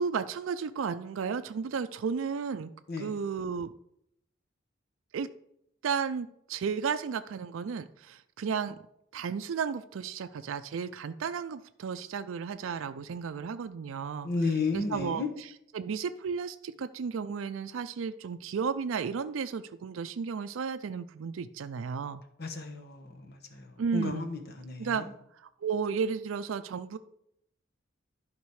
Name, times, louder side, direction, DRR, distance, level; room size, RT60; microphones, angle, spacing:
voice 1, 0.0-2.7 3.0-3.7 5.1-5.3 5.8-8.8 9.1-14.3 14.7-15.2 15.7-22.2 23.8-24.3 24.8-25.1 25.4-27.0, right 6 dB, 90° right, 10 dB, 0.4 m, -33 dB
voice 2, 14.2-15.3 22.4-25.1, left 4 dB, 55° left, 5 dB, 1.2 m, -33 dB
11.5 x 5.2 x 4.8 m, 0.75 s
head